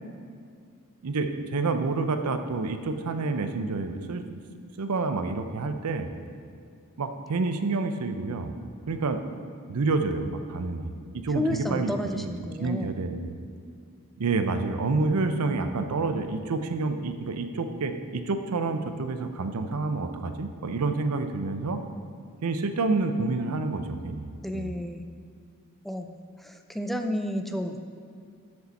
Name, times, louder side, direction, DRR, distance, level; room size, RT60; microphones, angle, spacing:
voice 1, 1.0-4.2 4.8-6.1 7.0-8.5 8.9-9.2 9.7-12.3 12.6-13.4 14.2-21.8 22.4-24.3 24.5-24.7, right 3 dB, 90° right, 8 dB, 0.6 m, -28 dB
voice 2, 11.3-12.9 24.4-25.1 25.8-27.8, left 1 dB, ahead, 6 dB, 0.3 m, -31 dB
6.9 x 6.6 x 4.1 m, 2.4 s
head